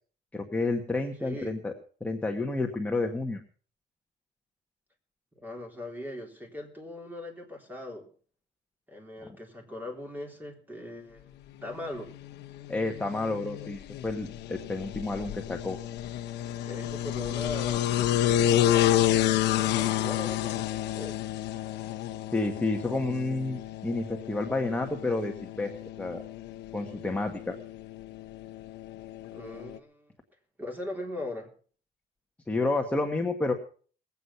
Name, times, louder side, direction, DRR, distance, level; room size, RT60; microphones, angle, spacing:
voice 1, 0.3-1.7 2.0-3.4 12.7-15.8 22.3-25.7 26.0-26.2 26.7-27.6 32.5-33.5, left 2 dB, 10° left, 3 dB, 1.4 m, -30 dB
voice 2, 1.2-1.6 5.4-8.1 8.9-12.1 16.6-17.9 19.4-21.2 29.3-30.1 30.6-31.5, left 1 dB, 10° right, 1 dB, 3.6 m, -40 dB
sound 1, 11.7-29.8, left 12 dB, 85° left, 0.9 m, -30 dB
20.5 x 8.3 x 5.7 m, 0.44 s
cardioid pair, 135°, 17 cm